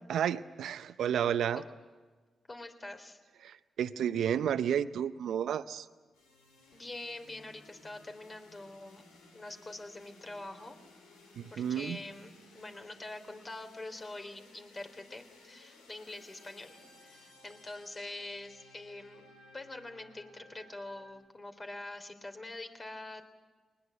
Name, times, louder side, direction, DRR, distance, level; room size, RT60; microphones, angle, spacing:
voice 1, 0.1-1.6 3.4-5.9 11.4-12.0, right 9 dB, 70° right, 13 dB, 0.7 m, -31 dB
voice 2, 2.5-3.2 6.7-9.0 9.3-10.8 11.5-19.3 19.5-23.2, left 2 dB, 35° left, 7 dB, 3.4 m, -45 dB
sound 1, 6.1-21.1, left 2 dB, 85° left, 3.0 m, -58 dB
22.0 x 20.0 x 9.3 m, 1.4 s
hypercardioid pair, 40°, 0 cm